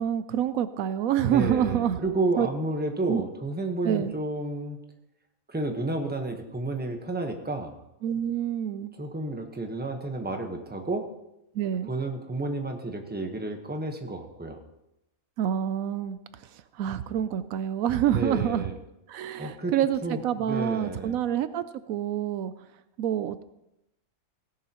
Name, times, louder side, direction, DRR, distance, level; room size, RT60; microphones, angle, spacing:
voice 1, 0.0-2.0 2.4-2.5 3.1-3.2 3.8-4.1 8.0-8.9 11.5-11.9 15.4-18.7 19.1-22.5 23.0-23.4, right 10 dB, 80° right, 13 dB, 1.0 m, -27 dB
voice 2, 1.2-4.8 5.5-7.7 9.0-11.0 11.9-14.6 18.1-18.7 19.4-20.2 20.5-21.2, right 2 dB, 10° right, 4 dB, 1.0 m, -31 dB
17.5 x 11.0 x 2.9 m, 0.89 s
omnidirectional pair, 1.5 m